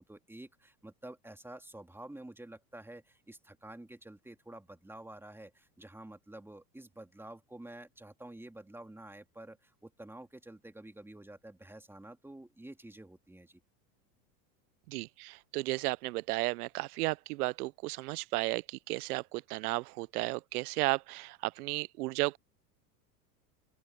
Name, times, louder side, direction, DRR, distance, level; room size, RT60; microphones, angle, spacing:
voice 1, 0.0-13.6, right 1 dB, 5° right, 3.0 m, -49 dB
voice 2, 14.9-22.4, right 22 dB, 70° right, 0.7 m, -34 dB
open air
hypercardioid pair, 105°, 47 cm